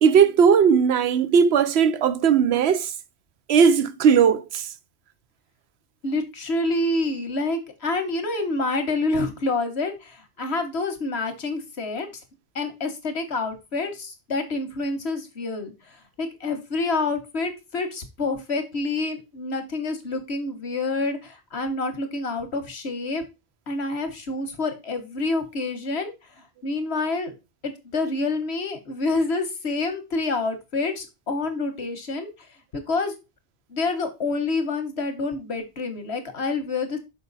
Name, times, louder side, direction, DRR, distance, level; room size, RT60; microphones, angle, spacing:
voice 1, 0.0-2.9 3.5-4.7, right 7 dB, 80° right, 0.9 m, -18 dB
voice 2, 6.0-12.1 12.5-23.2 23.7-27.3 27.6-32.3 32.7-33.1 33.7-37.0, left 3 dB, 85° left, 1.6 m, -27 dB
6.3 x 4.9 x 4.0 m
omnidirectional pair, 1.1 m